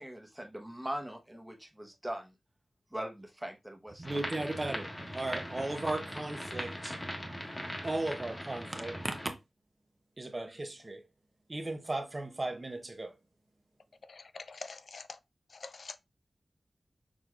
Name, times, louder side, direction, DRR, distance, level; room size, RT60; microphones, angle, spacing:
voice 1, 0.0-2.3 2.9-4.0, right 1 dB, 10° right, 1.0 m, -41 dB
sound 1, 4.0-9.3, equal, 25° left, 1.5 m, -40 dB
voice 2, 4.0-4.9 5.1-6.9 7.8-9.3 10.2-11.0 11.5-13.1, right 2 dB, 35° right, 0.8 m, -36 dB
voice 3, 14.1-15.2 15.5-16.0, left 4 dB, 75° left, 0.3 m, -45 dB
6.2 x 3.5 x 2.4 m
wide cardioid pair, 75°, 0 cm